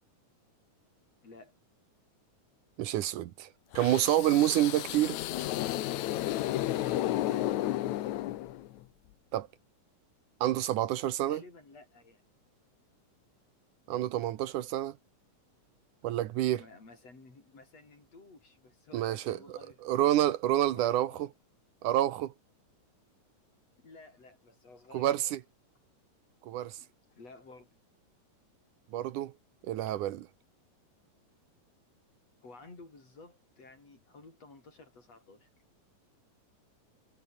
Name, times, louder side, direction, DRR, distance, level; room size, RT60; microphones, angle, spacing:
voice 1, 1.2-1.5 6.5-7.9 11.2-12.3 16.2-19.8 20.5-21.3 23.8-25.4 26.6-27.7 32.4-35.5, left 3 dB, 50° left, 8.1 m, -53 dB
voice 2, 2.8-3.5 3.8-5.2 9.3-9.5 10.4-11.4 13.9-15.0 16.0-16.6 18.9-19.4 19.8-21.1 21.8-22.3 24.9-25.4 26.5-26.8 28.9-29.3 29.7-30.3, right 13 dB, 75° right, 2.4 m, -28 dB
sound 1, 3.7-8.8, left 14 dB, 70° left, 2.1 m, -32 dB
omnidirectional pair, 3.7 m